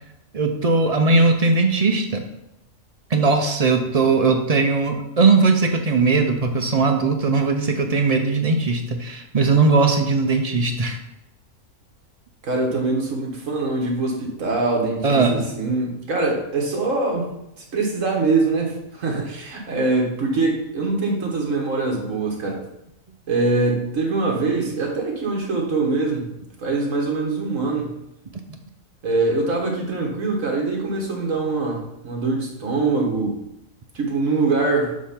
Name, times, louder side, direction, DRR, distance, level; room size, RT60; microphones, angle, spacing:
voice 1, 0.3-2.2 3.1-11.0 15.0-15.5 28.5-28.6, right 3 dB, 40° right, 4 dB, 0.5 m, -19 dB
voice 2, 12.4-17.3 17.7-22.6 23.3-26.3 26.6-27.9 29.0-33.4 33.9-34.9, right 3 dB, 65° right, 0 dB, 1.8 m, -23 dB
7.2 x 3.5 x 5.7 m, 0.85 s
omnidirectional pair, 1.4 m